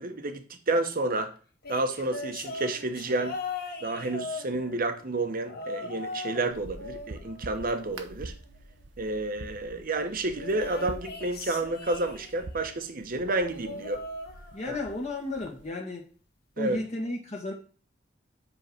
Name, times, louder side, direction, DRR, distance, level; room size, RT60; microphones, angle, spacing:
voice 1, 0.0-1.3 1.7-3.4 3.8-8.3 9.0-14.0 14.7-14.8 16.6-16.8, right 2 dB, 50° right, 1.1 m, -30 dB
sound 1, 1.6-4.9 5.5-6.5 6.8-8.3 10.4-12.5 13.4-14.9 15.2-15.6 16.7-16.8, left 3 dB, 60° left, 1.7 m, -39 dB
sound 2, 6.5-15.7, right 2 dB, 70° right, 0.9 m, -46 dB
voice 2, 14.5-16.0 16.6-17.5, left 2 dB, 40° left, 1.6 m, -33 dB
7.9 x 3.8 x 5.8 m
head